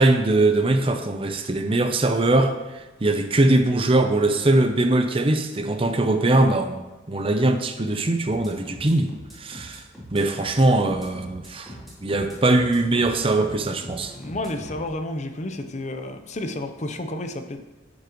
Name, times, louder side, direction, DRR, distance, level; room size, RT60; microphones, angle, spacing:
voice 1, 0.0-2.5 3.0-6.8 7.1-9.1 9.4-9.8 10.1-11.7 12.0-14.1, right 2 dB, 30° right, 7 dB, 0.6 m, -21 dB
sound 1, 8.3-14.9, equal, ahead, 3.6 m, -42 dB
voice 2, 14.1-17.6, left 1 dB, 35° left, 7 dB, 0.7 m, -31 dB
13.0 x 8.4 x 3.1 m, 1.1 s
head